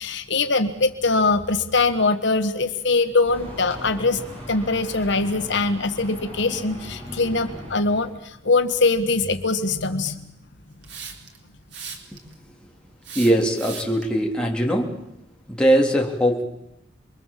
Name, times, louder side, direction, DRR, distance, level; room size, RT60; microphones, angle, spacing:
voice 1, 0.0-4.2 4.5-10.2, left 3 dB, 65° left, 8 dB, 1.4 m, -22 dB
sound 1, 3.3-8.2, equal, 30° right, 8.0 m, -38 dB
Hiss, 10.8-11.4 11.7-12.3 13.0-14.0, right 6 dB, 65° right, 4.1 m, -37 dB
voice 2, 13.2-15.0 15.5-16.4, right 1 dB, 5° left, -1 dB, 3.6 m, -20 dB
28.5 x 22.5 x 7.5 m, 0.84 s
head